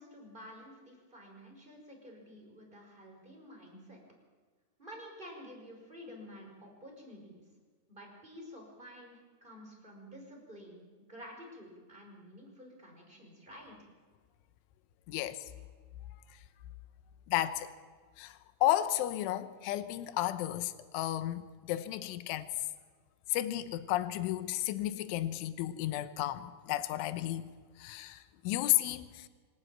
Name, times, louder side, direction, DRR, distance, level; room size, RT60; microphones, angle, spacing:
voice 1, 0.0-4.0 4.8-7.4 7.9-10.8 11.1-13.8, equal, 10° right, 5.0 m, -50 dB
voice 2, 15.1-15.5 17.3-17.7 18.2-22.5 23.3-27.5 27.8-29.3, left 14 dB, 80° left, 3.3 m, -33 dB
26.0 x 12.5 x 9.0 m
omnidirectional pair, 5.8 m